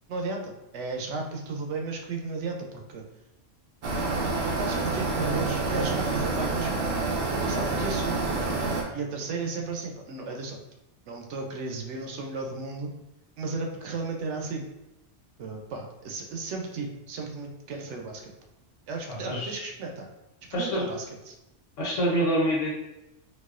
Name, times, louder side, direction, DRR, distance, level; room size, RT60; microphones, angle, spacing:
voice 1, 0.1-3.0 4.4-6.8 7.3-8.3 8.9-10.6 11.1-13.0 13.4-14.7 15.4-18.3 18.9-20.1 20.5-21.3, right 3 dB, 75° right, 2 dB, 0.9 m, -34 dB
sound 1, 3.8-8.8, right 3 dB, 55° right, 0.5 m, -28 dB
voice 2, 19.1-19.7 20.5-20.8 21.8-22.7, equal, 90° left, -4 dB, 1.3 m, -26 dB
4.0 x 2.3 x 2.4 m, 0.93 s
omnidirectional pair, 1.2 m